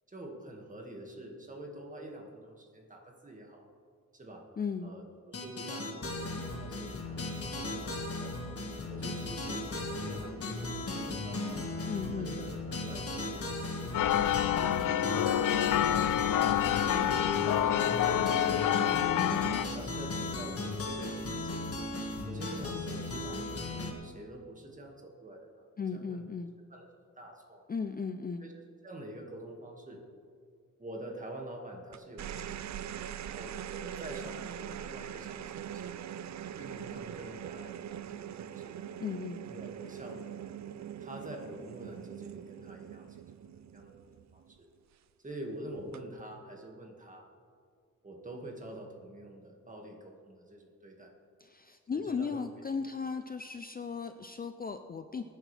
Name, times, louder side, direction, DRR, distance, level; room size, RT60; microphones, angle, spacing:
voice 1, 0.1-3.7 4.1-4.5 4.8-8.4 8.9-11.8 12.2-16.2 16.8-19.4 19.7-21.6 22.3-26.2 26.7-26.9 27.2-27.6 28.4-28.5 28.8-30.1 30.8-33.0 33.2-36.0 36.6-38.9 39.4-40.3 41.0-44.7 45.2-47.3 48.0-51.1 51.9-52.4, right 1 dB, 25° right, 1 dB, 2.0 m, -47 dB
voice 2, 4.6-4.9 11.9-12.3 25.8-26.5 27.7-28.5 39.0-39.4 51.4-55.2, left 5 dB, 30° left, 8 dB, 0.5 m, -36 dB
sound 1, 5.3-23.9, left 2 dB, 45° left, 1.7 m, -36 dB
sound 2, 13.9-19.6, left 11 dB, 85° left, 0.5 m, -27 dB
sound 3, 31.9-44.5 45.8-46.2, right 10 dB, 60° right, 0.5 m, -42 dB
24.0 x 9.8 x 3.4 m, 2.2 s
wide cardioid pair, 130°, 31 cm